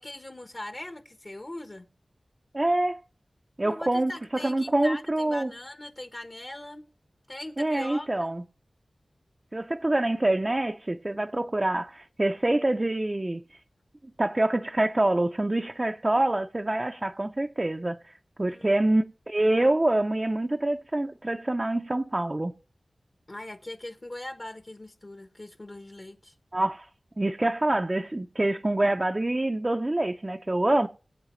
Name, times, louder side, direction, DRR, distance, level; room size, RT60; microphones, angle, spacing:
voice 1, 0.0-1.9 3.6-6.8 7.3-8.3 18.4-18.7 23.3-26.3, left 1 dB, 45° left, 1.0 m, -40 dB
voice 2, 2.5-3.0 3.6-5.5 7.6-8.4 9.5-13.6 14.2-22.5 26.5-26.9 27.2-30.9, right 1 dB, 30° right, 0.5 m, -26 dB
22.0 x 8.1 x 3.1 m
wide cardioid pair, 50°, 0 cm